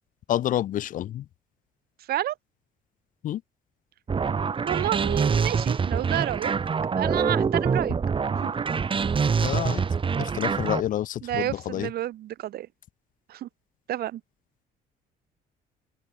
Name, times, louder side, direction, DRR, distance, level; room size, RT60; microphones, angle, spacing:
voice 1, 0.3-1.2 3.2-3.4 9.4-9.8 10.2-11.9, left 12 dB, 55° left, 0.5 m, -28 dB
sound 1, 4.1-10.8, right 5 dB, 30° right, 2.6 m, -25 dB
voice 2, 4.6-6.5 7.0-7.9 8.4-8.5 11.2-12.7 13.3-13.5 13.9-14.2, right 13 dB, 65° right, 2.8 m, -29 dB
open air
cardioid pair, 110°, 17 cm